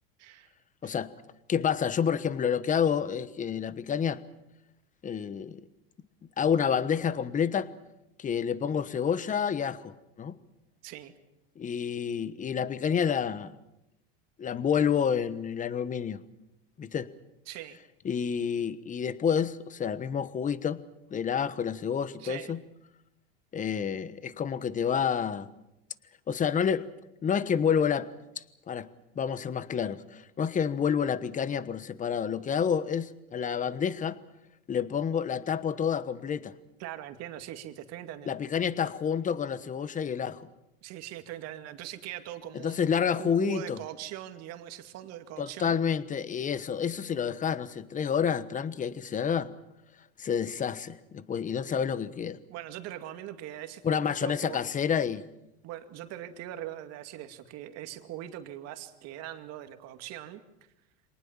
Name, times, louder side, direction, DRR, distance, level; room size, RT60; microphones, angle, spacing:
voice 1, 0.2-0.5 0.8-1.0 10.8-11.1 17.5-17.8 22.2-22.5 36.8-38.4 40.8-42.8 43.2-45.8 52.5-54.6 55.6-60.4, right 12 dB, 55° right, 8 dB, 2.3 m, -41 dB
voice 2, 1.5-4.2 5.0-5.6 6.4-7.7 8.2-10.4 11.6-13.5 14.4-16.2 16.8-17.1 18.0-20.8 21.1-22.6 23.5-25.5 26.3-26.9 27.2-28.1 28.4-28.9 29.1-34.2 34.7-36.5 38.3-40.4 42.6-43.8 45.4-49.5 50.2-52.4 53.8-55.2, left 7 dB, 25° left, 16 dB, 1.2 m, -29 dB
26.0 x 19.0 x 7.3 m, 0.89 s
supercardioid pair, 115°, 31 cm